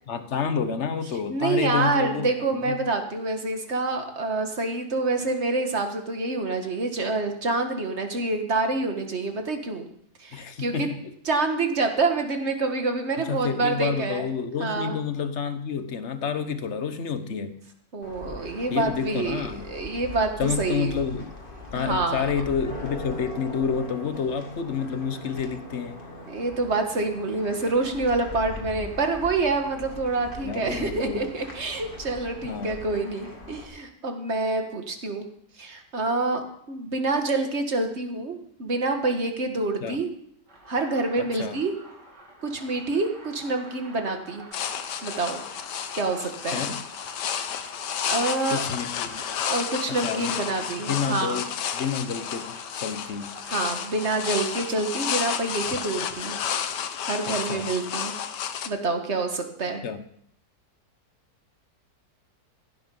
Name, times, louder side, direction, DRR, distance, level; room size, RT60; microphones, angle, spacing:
voice 1, 0.1-2.8 10.3-11.0 13.2-17.5 18.7-19.6 20.4-21.3 21.7-26.0 28.6-28.9 30.4-31.2 32.4-32.8 39.8-40.0 41.2-41.6 46.5-46.8 48.5-49.2 49.9-50.4 50.9-53.3 57.3-57.7 59.8-60.0, left 6 dB, 50° left, 10 dB, 1.2 m, -29 dB
voice 2, 1.3-9.9 10.2-10.9 11.3-14.3 14.6-15.0 17.9-20.9 21.8-22.2 26.3-35.3 35.6-36.4 36.7-40.1 40.7-41.7 42.4-44.4 45.0-45.4 45.9-46.6 48.0-48.6 49.4-51.4 53.5-56.4 57.0-58.1 58.6-59.8, right 3 dB, 40° right, 5 dB, 2.0 m, -27 dB
sound 1, 18.0-33.7, left 2 dB, 30° left, 2.3 m, -41 dB
sound 2, 40.5-55.7, right 1 dB, 85° right, 3.5 m, -48 dB
sound 3, 44.5-58.7, left 8 dB, 80° left, 1.5 m, -31 dB
16.0 x 10.0 x 5.5 m, 0.69 s
omnidirectional pair, 1.8 m